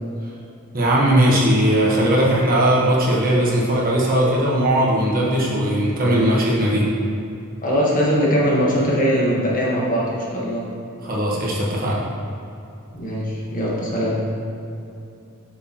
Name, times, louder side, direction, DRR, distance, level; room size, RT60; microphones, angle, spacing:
voice 1, 0.7-6.8 11.0-12.0, right 1 dB, 40° right, -5 dB, 1.3 m, -18 dB
voice 2, 7.6-10.7 12.9-14.2, equal, 40° left, -5 dB, 1.4 m, -21 dB
7.9 x 6.2 x 3.0 m, 2.7 s
head